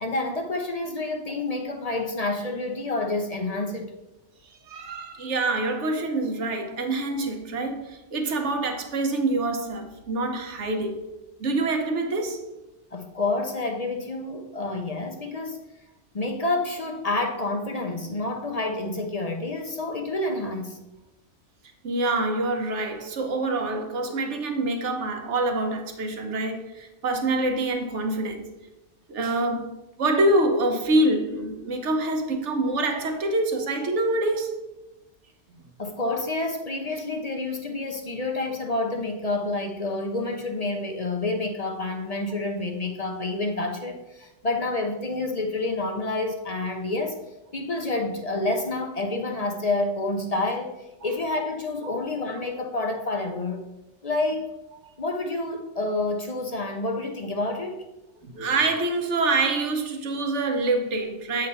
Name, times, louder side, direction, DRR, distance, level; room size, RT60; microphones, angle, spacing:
voice 1, 0.0-4.0 12.9-15.6 16.1-20.8 35.8-47.2 47.5-53.6 54.0-54.5 55.0-57.8, left 2 dB, 40° left, 0.6 m, -28 dB
voice 2, 4.7-11.0 11.4-12.4 21.8-28.5 29.1-29.7 30.0-34.5 51.8-52.0 58.2-61.5, right 2 dB, 90° right, 1.3 m, -26 dB
7.8 x 3.9 x 5.4 m
omnidirectional pair, 1.2 m